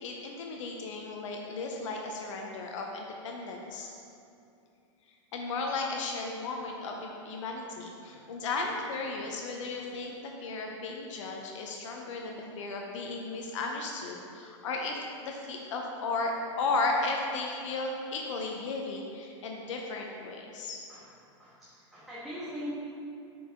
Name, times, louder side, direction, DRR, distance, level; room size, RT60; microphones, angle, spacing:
voice 1, 0.0-3.9 5.3-20.8, left 3 dB, 80° left, 1 dB, 0.7 m, -35 dB
voice 2, 21.4-22.7, equal, ahead, -11 dB, 1.3 m, -43 dB
7.8 x 4.7 x 3.6 m, 2.6 s
supercardioid pair, 130°, 16 cm